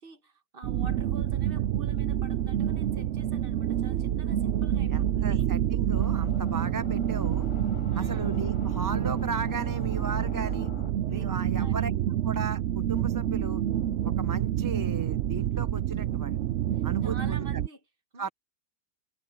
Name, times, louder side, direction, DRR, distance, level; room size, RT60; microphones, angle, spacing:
voice 1, 0.0-5.5 7.9-8.4 11.0-12.0 16.7-17.8 18.1-18.3, right 2 dB, 35° right, 1.4 m, -47 dB
sound 1, 0.6-17.7, right 11 dB, 65° right, 0.7 m, -28 dB
voice 2, 4.9-7.5 7.9-10.7 11.1-11.9 12.2-13.6 14.0-16.4 16.8-17.4 18.2-18.3, right 4 dB, 20° right, 0.5 m, -36 dB
sound 2, 5.9-10.9, left 5 dB, 40° left, 0.4 m, -43 dB
omnidirectional pair, 1.7 m